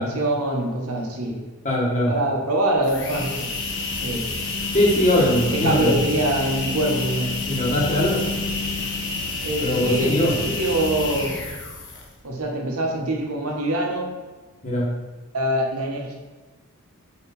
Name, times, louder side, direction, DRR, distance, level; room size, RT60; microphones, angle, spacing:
voice 1, 0.0-1.4 2.1-3.5 4.0-4.3 5.5-7.4 9.4-11.4 12.2-14.1 15.3-16.2, right 1 dB, 90° right, 0 dB, 1.3 m, -24 dB
voice 2, 1.6-2.1 4.7-6.0 7.5-8.2 9.6-10.3 14.6-14.9, left 1 dB, 35° left, -4 dB, 1.6 m, -21 dB
sound 1, 2.8-12.2, left 3 dB, 60° left, 1.1 m, -28 dB
4.8 x 4.7 x 5.4 m, 1.3 s
head